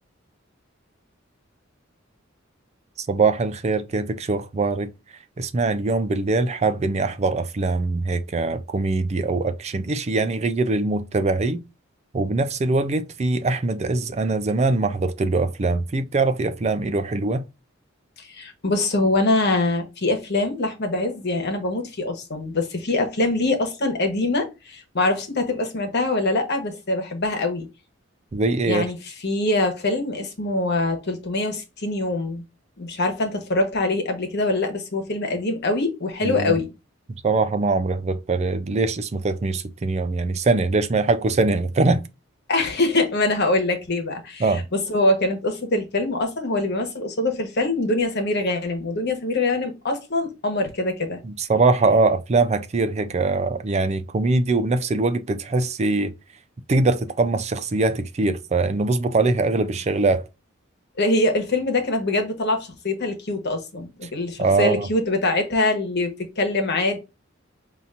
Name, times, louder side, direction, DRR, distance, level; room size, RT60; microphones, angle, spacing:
voice 1, 3.1-4.9 5.4-11.6 12.1-17.4 28.3-28.8 36.2-36.5 37.2-42.0 44.4-44.6 51.5-56.1 56.7-60.2 64.4-64.9, right 3 dB, 35° right, 0.4 m, -22 dB
voice 2, 18.2-27.7 28.6-32.4 32.8-36.7 42.5-51.2 61.0-67.0, left 2 dB, 55° left, 1.2 m, -24 dB
5.6 x 2.8 x 2.5 m
head